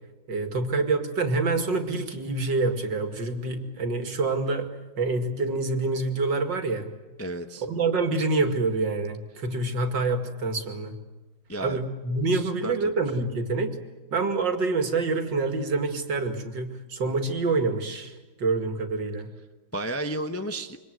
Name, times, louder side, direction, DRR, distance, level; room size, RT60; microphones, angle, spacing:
voice 1, 0.3-4.7 5.0-6.9 7.6-11.0 11.6-13.8 14.1-19.3, right 3 dB, 65° right, 6 dB, 2.9 m, -26 dB
voice 2, 7.2-7.6 11.5-11.8 12.3-12.9 19.7-20.8, right 1 dB, 10° left, 6 dB, 0.7 m, -33 dB
26.5 x 24.5 x 7.9 m, 1.2 s
omnidirectional pair, 2.1 m